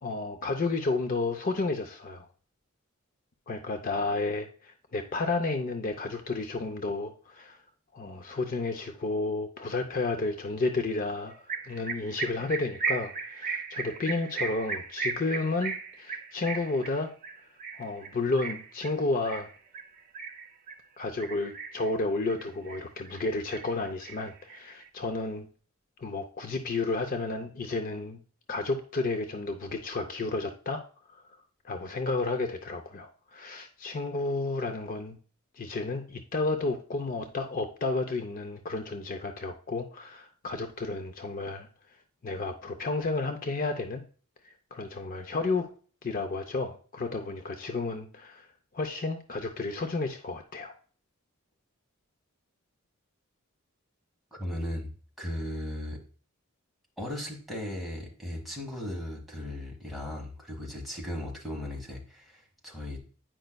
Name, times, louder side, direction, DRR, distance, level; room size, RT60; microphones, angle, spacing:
voice 1, 0.0-2.3 3.5-7.6 7.9-17.1 17.8-19.5 21.0-25.5 26.0-28.2 28.5-30.8 31.6-35.2 35.6-41.7 42.2-44.0 44.4-45.7 46.0-48.5 48.7-50.7, left 3 dB, 40° left, 5 dB, 0.5 m, -32 dB
sound 1, 11.5-20.8 21.2-21.9 22.3-23.2 23.5-24.8, right 5 dB, 40° right, 0.6 m, -36 dB
voice 2, 54.3-54.9 55.2-56.0 57.0-63.0, left 1 dB, ahead, -2 dB, 1.4 m, -37 dB
8.9 x 5.2 x 2.2 m, 0.41 s
head